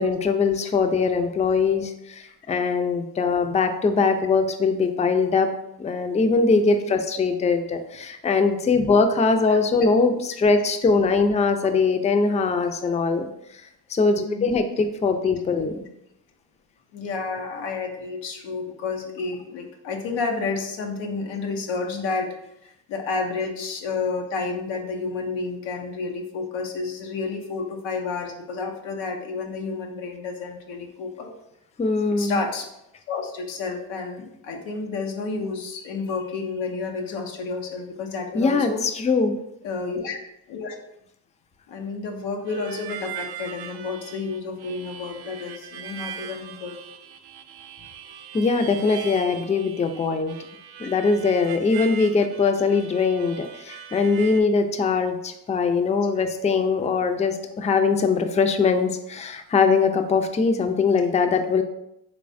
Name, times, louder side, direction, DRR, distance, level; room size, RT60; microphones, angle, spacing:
voice 1, 0.0-5.5 5.8-13.6 13.9-15.9 31.8-32.4 38.3-39.4 48.3-50.4 50.8-61.6, left 4 dB, 15° left, 7 dB, 0.4 m, -22 dB
voice 2, 14.2-14.7 16.9-22.3 22.6-31.3 32.1-32.7 33.1-38.8 39.6-40.2 40.5-40.8 41.7-46.8, left 4 dB, 90° left, 2 dB, 0.6 m, -30 dB
Harmonica, 42.5-54.4, right 9 dB, 60° right, 0.5 m, -40 dB
3.3 x 3.2 x 2.5 m, 0.80 s
hypercardioid pair, 40°, 44 cm